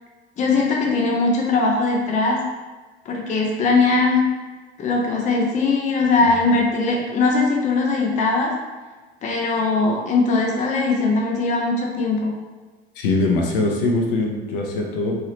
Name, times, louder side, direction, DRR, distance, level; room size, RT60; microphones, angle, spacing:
voice 1, 0.4-2.4 3.1-4.2 4.8-8.5 9.2-12.3, left 3 dB, 25° left, -1 dB, 0.6 m, -20 dB
voice 2, 13.0-15.2, left 2 dB, 60° left, 0 dB, 0.7 m, -22 dB
3.2 x 2.8 x 2.9 m, 1.3 s
figure-of-eight pair, 75°, 31 cm